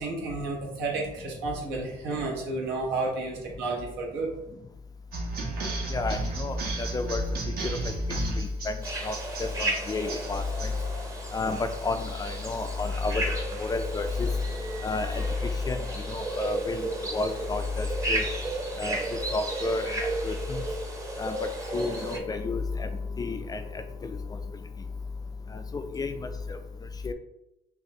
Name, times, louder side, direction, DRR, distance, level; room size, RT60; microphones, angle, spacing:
voice 1, 0.0-4.3, right 3 dB, 85° right, -2 dB, 1.3 m, -31 dB
sound 1, 5.1-10.7, right 2 dB, 65° right, 1.1 m, -33 dB
voice 2, 5.9-7.2 8.4-8.7 9.0-10.7 11.3-13.2 13.6-14.3 14.8-15.2 15.7-15.8 16.1-16.9 17.1-18.2 18.8-19.0 19.3-19.9 20.2-20.6 21.2-21.4 21.7-22.9 23.2-23.6 24.0-24.1 25.7-26.1 27.0-27.1, left 3 dB, 20° left, 7 dB, 0.3 m, -30 dB
sound 2, 8.8-22.2, right 2 dB, 20° right, 0.7 m, -34 dB
5.3 x 2.5 x 3.0 m, 0.88 s
cardioid pair, 110°, 17 cm